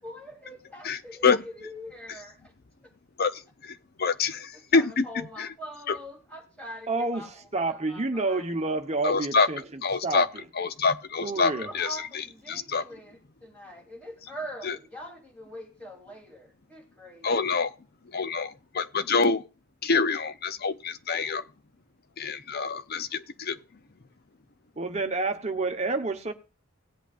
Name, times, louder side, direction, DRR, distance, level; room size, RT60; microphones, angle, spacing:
voice 1, 0.0-2.5 4.3-8.4 11.3-17.4, equal, 5° left, 3.3 m, -43 dB
voice 2, 0.8-1.4 3.2-5.5 5.9-6.0 9.0-9.5 9.8-10.3 10.5-12.8 14.6-14.8 17.2-17.8 18.0-19.5 19.8-21.4 22.2-23.6, left 4 dB, 45° left, 0.6 m, -26 dB
voice 3, 6.9-9.6 10.0-10.2 11.2-11.7 24.8-26.3, right 3 dB, 30° right, 1.1 m, -29 dB
18.0 x 8.2 x 2.5 m
head